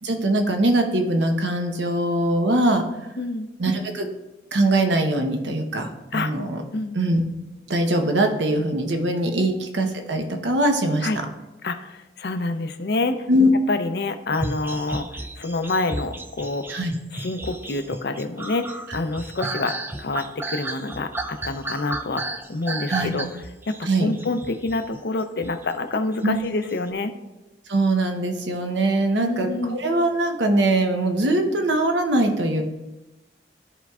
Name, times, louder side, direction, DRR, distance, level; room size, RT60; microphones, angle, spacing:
voice 1, 0.0-2.8 3.6-4.1 4.5-6.6 6.9-7.2 7.7-11.1 13.3-13.5 16.7-16.9 22.9-23.1 23.8-24.1 26.2-26.4 27.7-32.6, right 1 dB, 85° right, 5 dB, 0.9 m, -22 dB
voice 2, 3.2-3.5 6.1-6.3 6.7-7.0 9.4-9.5 11.0-11.2 11.6-13.3 13.7-15.1 15.4-16.8 17.1-23.3 23.7-27.1 29.1-29.8, left 3 dB, 60° left, 8 dB, 0.5 m, -27 dB
sound 1, 14.3-25.6 26.4-26.8, right 2 dB, 10° right, 0.3 m, -33 dB
13.0 x 4.5 x 2.4 m, 1.0 s
head